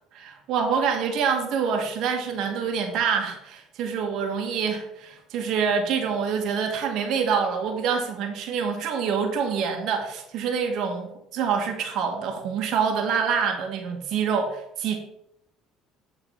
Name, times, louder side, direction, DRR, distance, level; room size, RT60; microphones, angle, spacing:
voice 1, 0.1-15.0, right 6 dB, 65° right, 3 dB, 1.5 m, -26 dB
9.1 x 4.0 x 5.7 m, 0.77 s
supercardioid pair, 100°, 0 cm